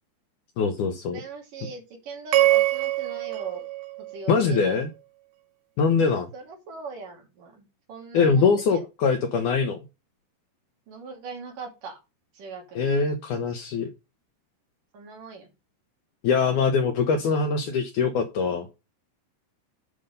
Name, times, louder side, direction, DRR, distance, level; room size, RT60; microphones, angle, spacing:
voice 1, 0.6-1.2 4.3-4.9 5.8-6.3 8.1-9.8 12.8-13.9 16.2-18.7, left 5 dB, 75° left, 6 dB, 1.8 m, -23 dB
voice 2, 1.1-3.7 4.0-4.8 6.3-8.9 10.9-12.0 12.3-12.9 14.9-15.5, right 4 dB, 55° right, 2 dB, 4.2 m, -40 dB
sound 1, 2.3-4.7, right 16 dB, 70° right, 2.6 m, -24 dB
9.9 x 5.3 x 5.6 m, 0.27 s
omnidirectional pair, 4.8 m